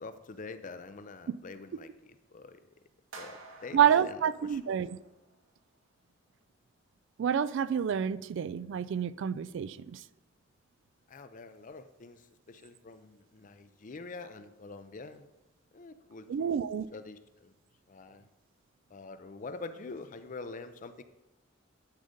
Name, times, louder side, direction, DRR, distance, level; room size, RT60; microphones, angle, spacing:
voice 1, 0.0-2.6 3.2-4.7 11.1-15.3 15.7-17.5 17.9-18.2 18.9-21.0, left 3 dB, 40° left, 0.5 m, -46 dB
sound 1, 3.1-5.4, right 3 dB, 85° right, 1.5 m, -51 dB
voice 2, 3.7-5.0 7.2-9.8 16.3-16.9, right 8 dB, 65° right, 0.3 m, -28 dB
11.5 x 4.0 x 5.1 m
head